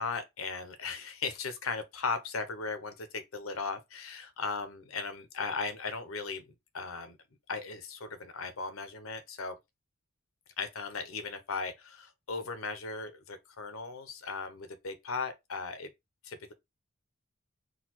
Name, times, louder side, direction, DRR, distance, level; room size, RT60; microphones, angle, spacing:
voice 1, 0.0-7.2 7.5-9.6 10.6-15.9 16.2-16.5, left 4 dB, 85° left, 0.9 m, -37 dB
4.0 x 2.4 x 4.4 m
head